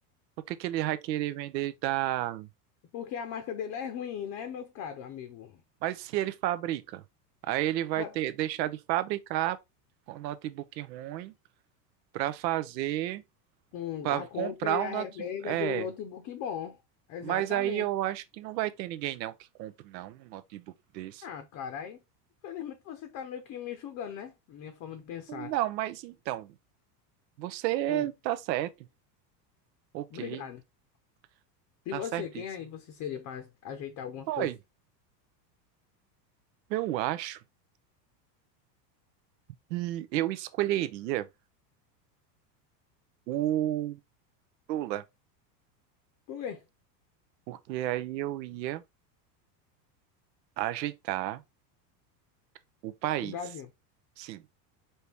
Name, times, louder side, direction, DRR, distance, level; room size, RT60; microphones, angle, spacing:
voice 1, 0.5-2.5 5.8-7.0 7.5-9.6 10.1-11.3 12.1-13.2 14.0-15.0 15.4-15.9 17.2-19.3 19.6-20.6 20.9-21.2 25.3-26.5 27.4-28.7 29.9-30.4 31.9-32.4 34.3-34.6 36.7-37.4 39.7-41.3 43.3-44.0 44.7-45.0 47.5-48.8 50.6-51.4 52.8-53.3 54.2-54.4, right 14 dB, 90° right, 0.7 m, -31 dB
voice 2, 2.9-5.6 8.0-8.2 13.7-16.8 17.1-17.9 21.2-22.0 22.4-25.5 27.9-28.1 30.1-30.6 31.9-34.5 46.3-46.6 53.2-53.7, left 8 dB, 35° left, 0.6 m, -38 dB
4.4 x 2.8 x 3.4 m
supercardioid pair, 130°, 49 cm